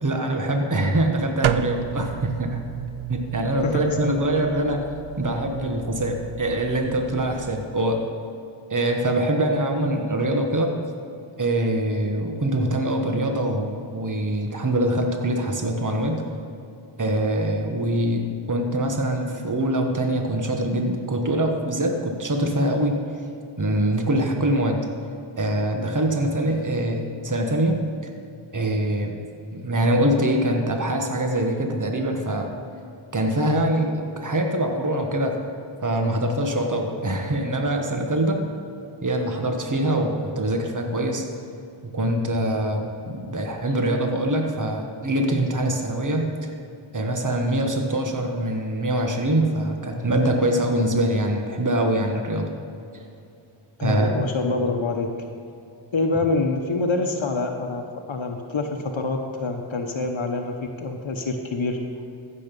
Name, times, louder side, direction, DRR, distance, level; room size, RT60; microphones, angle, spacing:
voice 1, 0.0-2.6 3.1-4.8 5.2-8.0 8.7-10.8 11.4-16.2 17.0-23.0 23.6-24.8 25.4-27.8 28.5-29.2 29.5-32.5 33.1-35.4 35.8-38.4 39.0-41.3 41.8-46.5 46.9-52.5 53.8-54.1, right 1 dB, 40° right, 3 dB, 1.4 m, -24 dB
sound 1, 1.4-7.6, right 11 dB, 75° right, 0.5 m, -32 dB
voice 2, 3.6-4.2 53.8-55.1 55.9-61.8, left 3 dB, 70° left, 3 dB, 1.0 m, -26 dB
15.0 x 6.7 x 5.3 m, 2.6 s
wide cardioid pair, 50°, 49 cm